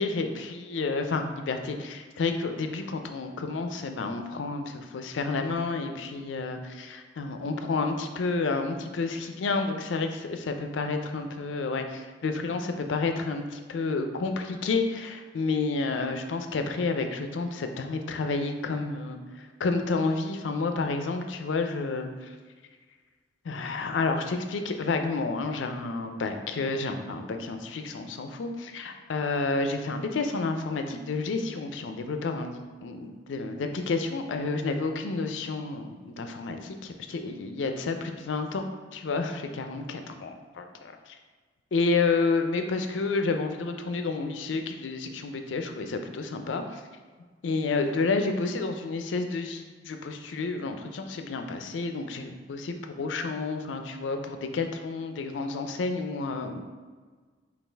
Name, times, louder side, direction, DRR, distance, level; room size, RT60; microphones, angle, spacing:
voice 1, 0.0-22.4 23.4-38.7 38.9-41.2 41.7-46.8 47.4-56.6, left 3 dB, 85° left, 6 dB, 0.4 m, -30 dB
5.4 x 2.4 x 3.3 m, 1.5 s
head